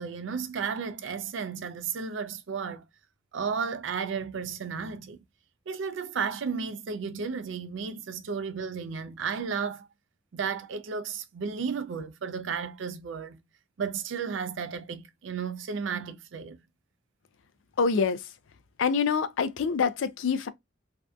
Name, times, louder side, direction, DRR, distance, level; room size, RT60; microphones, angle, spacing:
voice 1, 0.0-2.8 3.3-5.2 5.7-9.9 10.3-13.4 13.8-16.6, right 6 dB, 70° right, 0.4 m, -33 dB
voice 2, 17.8-18.4 18.8-20.5, left 5 dB, 80° left, 0.4 m, -26 dB
2.6 x 2.2 x 2.3 m
head